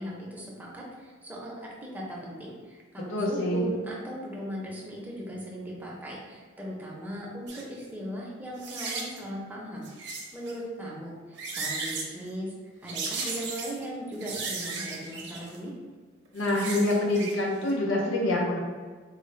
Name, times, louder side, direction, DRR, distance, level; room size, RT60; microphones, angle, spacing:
voice 1, 0.0-9.9 10.3-12.5 12.8-15.7, equal, 10° right, -4 dB, 0.6 m, -38 dB
voice 2, 3.1-3.7 16.3-18.6, left 1 dB, 85° left, -2 dB, 0.5 m, -26 dB
sound 1, 7.5-7.6 8.6-9.2 9.8-10.5 11.2-12.1 12.9-13.8 14.2-15.6 16.3-17.4 17.7-17.8, right 4 dB, 60° right, 0.6 m, -35 dB
3.7 x 2.0 x 3.1 m, 1.5 s
head